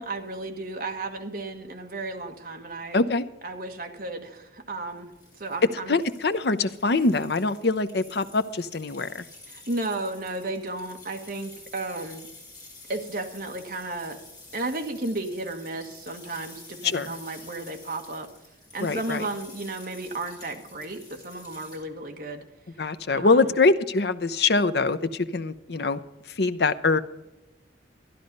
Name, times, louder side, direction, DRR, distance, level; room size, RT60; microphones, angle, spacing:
voice 1, 0.0-3.0 3.4-5.1 5.4-6.0 9.5-12.3 12.9-14.2 14.5-18.3 18.7-22.4 23.1-23.5, right 2 dB, 50° right, 1.5 m, -33 dB
voice 2, 2.9-3.2 5.9-9.2 16.8-17.1 18.8-19.3 22.8-26.0 26.4-27.0, left 3 dB, 60° left, 0.7 m, -23 dB
sound 1, 5.0-21.8, left 3 dB, 20° left, 5.5 m, -49 dB
13.0 x 11.0 x 5.3 m
head